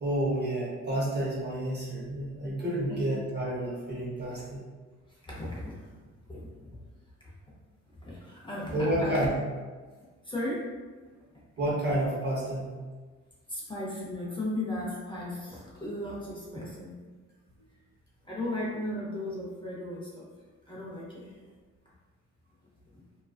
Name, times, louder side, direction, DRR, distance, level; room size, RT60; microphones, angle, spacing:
voice 1, 0.0-4.6 8.7-9.3 11.6-12.7, right 1 dB, 35° right, -5 dB, 0.7 m, -30 dB
voice 2, 5.2-5.9 6.3-6.7 7.2-7.3 8.0-9.3 10.2-10.7 13.5-17.0 18.2-20.3 20.7-21.4 22.9-23.0, left 1 dB, 15° left, -6 dB, 0.6 m, -36 dB
2.4 x 2.2 x 2.3 m, 1.4 s
cardioid pair, 90°, 30 cm